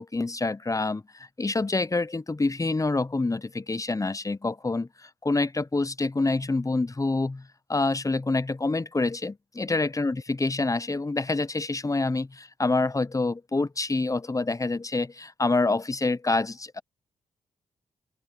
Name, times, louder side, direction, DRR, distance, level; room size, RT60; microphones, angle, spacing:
voice 1, 0.0-7.4 7.7-16.8, left 3 dB, 20° left, 0.8 m, -27 dB
open air
supercardioid pair, 50°, 15 cm